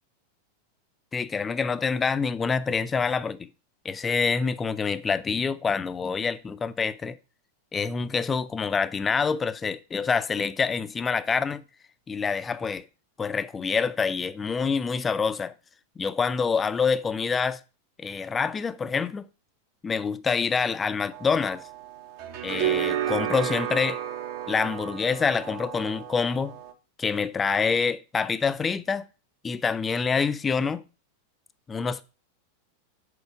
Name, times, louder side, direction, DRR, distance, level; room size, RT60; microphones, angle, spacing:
voice 1, 1.1-3.5 3.8-7.2 7.7-11.6 12.1-12.8 13.2-15.5 16.0-17.6 18.0-19.3 19.8-21.6 22.4-24.0 24.5-26.6 27.0-29.1 29.4-30.8 31.7-32.0, left 5 dB, 15° left, 0.5 m, -26 dB
sound 1, 21.1-26.7, right 10 dB, 45° right, 0.9 m, -32 dB
6.5 x 4.6 x 4.7 m
figure-of-eight pair, 90°, 0 cm